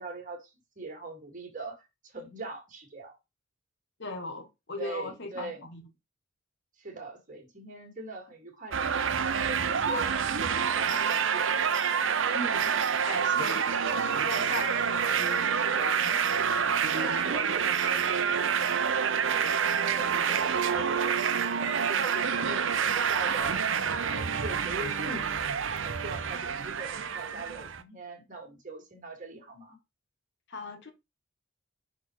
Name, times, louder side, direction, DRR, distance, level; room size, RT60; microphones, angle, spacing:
voice 1, 0.0-1.8 2.1-3.2 4.8-5.6 6.8-11.5 14.8-14.9 16.9-21.1 21.5-23.6 24.0-25.4 25.7-29.8, right 3 dB, 40° right, 2.2 m, -42 dB
voice 2, 4.0-5.9 12.3-12.8 13.1-13.7 14.2-16.2 30.5-30.9, left 2 dB, 55° left, 1.6 m, -39 dB
sound 1, 8.7-27.8, right 7 dB, 65° right, 0.7 m, -27 dB
5.9 x 4.3 x 4.5 m
head